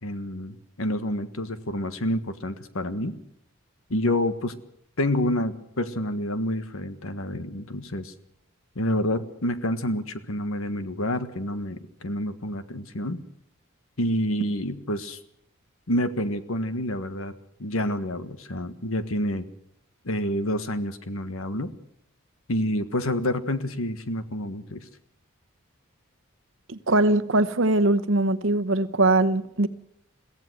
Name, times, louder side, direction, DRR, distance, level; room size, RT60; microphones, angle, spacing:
voice 1, 0.0-3.1 3.9-4.5 5.0-8.1 8.7-13.2 14.0-15.2 15.9-17.3 17.6-19.4 20.0-21.7 22.5-24.8, left 1 dB, 75° left, 1.5 m, -28 dB
voice 2, 26.7-29.7, right 2 dB, 60° right, 1.0 m, -21 dB
22.5 x 16.5 x 7.9 m
head